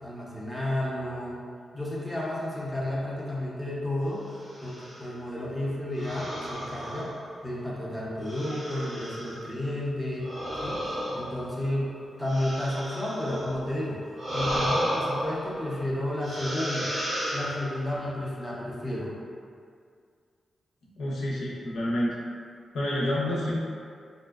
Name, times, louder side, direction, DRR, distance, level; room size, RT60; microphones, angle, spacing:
voice 1, 0.0-1.4 1.7-4.2 4.6-7.1 7.4-10.3 10.6-10.8 11.1-14.0 14.3-16.9 17.3-19.1, left 1 dB, 5° left, -7 dB, 0.6 m, -32 dB
sound 1, 4.4-5.1 6.0-7.6 8.2-9.5 10.2-13.6 14.1-15.8 16.2-17.9, equal, 50° right, 1.3 m, -33 dB
voice 2, 21.0-22.1 22.7-23.6, left 1 dB, 85° left, -6 dB, 0.5 m, -28 dB
2.6 x 2.0 x 2.3 m, 2.2 s
cardioid pair, 70°, 0 cm